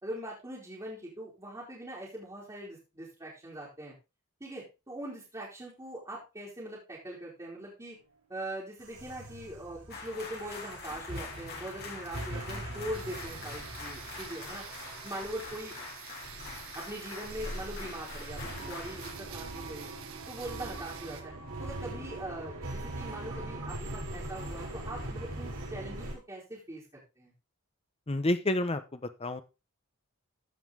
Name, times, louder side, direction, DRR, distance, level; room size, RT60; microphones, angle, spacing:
voice 1, 0.0-3.9 4.4-8.0 8.3-14.7 15.0-15.7 16.7-19.9 20.3-21.3 21.6-27.3, right 1 dB, 15° right, -7 dB, 3.6 m, -42 dB
sound 1, 8.8-26.1, right 1 dB, 85° right, 5.3 m, -42 dB
sound 2, 9.9-19.1, left 4 dB, 45° left, 3.3 m, -45 dB
sound 3, 12.9-21.2, right 8 dB, 70° right, 1.6 m, -48 dB
voice 2, 28.1-29.4, left 1 dB, 25° left, 10 dB, 0.9 m, -29 dB
15.0 x 5.5 x 3.8 m, 0.28 s
head